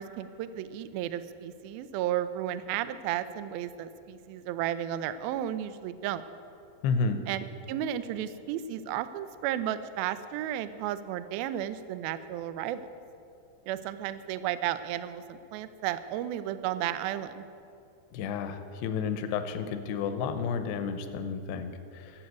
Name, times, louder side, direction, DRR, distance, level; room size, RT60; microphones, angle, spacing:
voice 1, 0.0-6.2 7.3-12.9 13.7-17.5, right 11 dB, 80° right, 13 dB, 2.2 m, -33 dB
voice 2, 6.8-7.2 18.1-22.1, left 5 dB, 85° left, 8 dB, 2.9 m, -31 dB
14.5 x 7.8 x 9.4 m, 2.6 s
omnidirectional pair, 4.8 m